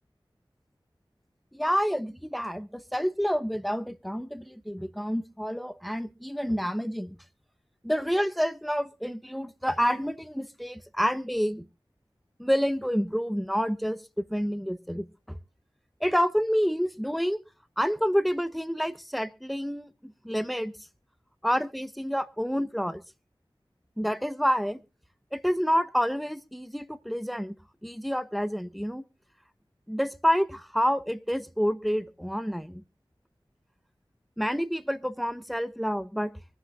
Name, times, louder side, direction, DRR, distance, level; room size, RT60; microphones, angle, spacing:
voice 1, 1.5-7.2 7.8-11.6 12.4-15.4 16.0-17.4 17.8-20.7 21.4-23.0 24.0-24.8 25.3-27.6 27.8-29.0 29.9-32.8 34.4-36.3, equal, ahead, 0.9 m, -28 dB
24.0 x 10.0 x 2.4 m
wide cardioid pair, 55°, 9 cm